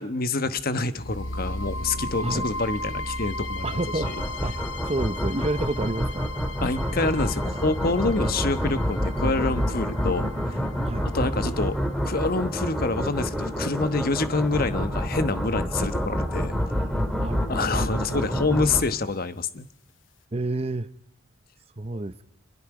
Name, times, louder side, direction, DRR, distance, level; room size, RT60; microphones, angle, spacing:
voice 1, 0.0-4.2 6.6-10.6 11.1-11.8 12.0-16.6 17.5-19.7, left 3 dB, 50° left, 12 dB, 1.2 m, -27 dB
sound 1, 0.9-14.9, left 1 dB, 75° left, 0.9 m, -37 dB
voice 2, 3.6-6.3 8.2-8.3 10.8-11.1 17.2-17.4 20.3-20.9 21.8-22.2, right 2 dB, 30° right, 10 dB, 0.8 m, -29 dB
sound 2, 4.0-18.8, equal, ahead, 2.5 m, -28 dB
27.0 x 22.0 x 5.0 m, 0.74 s
head